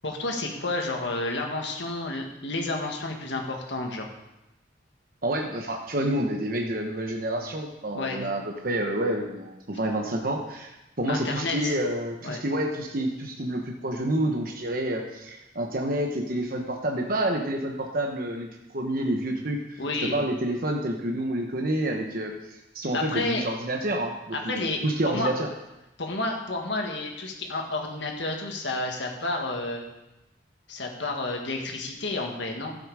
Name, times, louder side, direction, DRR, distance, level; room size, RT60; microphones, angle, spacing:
voice 1, 0.0-4.1 7.9-8.2 11.0-11.8 12.2-12.4 19.8-20.2 22.9-23.4 24.3-25.3 26.0-29.8 30.7-32.7, left 2 dB, 70° left, 2 dB, 1.9 m, -30 dB
voice 2, 5.2-18.5 18.7-19.8 20.1-25.5, right 1 dB, 50° right, 1 dB, 1.1 m, -28 dB
13.5 x 7.8 x 4.9 m, 0.95 s
head